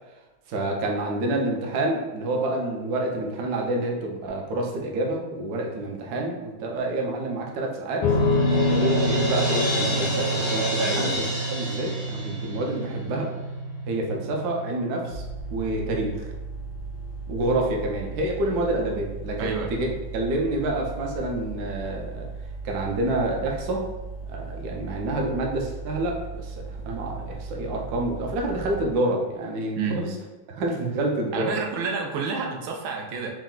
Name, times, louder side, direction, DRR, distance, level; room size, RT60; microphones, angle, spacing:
voice 1, 0.5-8.1 8.5-11.1 11.5-13.3 13.9-15.2 15.5-16.2 17.3-19.9 20.1-22.3 22.6-23.9 24.2-30.1 30.5-31.5, right 2 dB, 65° right, 0 dB, 1.0 m, -28 dB
sound 1, 8.0-20.5, left 1 dB, 90° left, 1.4 m, -29 dB
Crash cymbal, 8.1-13.0, equal, 10° right, 0.6 m, -29 dB
voice 2, 10.8-11.2 19.4-19.7 29.7-30.0 31.3-33.3, right 4 dB, 85° right, 1 dB, 1.4 m, -29 dB
sound 2, 15.1-28.9, right 3 dB, 70° left, 0.9 m, -37 dB
4.5 x 2.1 x 3.7 m, 1.1 s
omnidirectional pair, 2.1 m